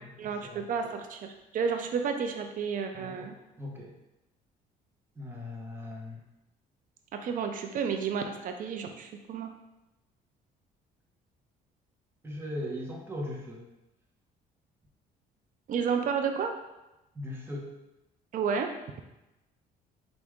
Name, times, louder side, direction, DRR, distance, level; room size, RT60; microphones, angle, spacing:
voice 1, 0.2-3.4 7.1-9.5 15.7-16.5 18.3-18.7, right 6 dB, 55° right, 5 dB, 0.5 m, -31 dB
voice 2, 2.9-3.3 3.6-3.9 5.2-6.2 12.2-13.6 17.1-17.7, left 1 dB, 15° right, -3 dB, 1.0 m, -38 dB
4.8 x 2.5 x 3.5 m, 0.97 s
cardioid pair, 110°, 17 cm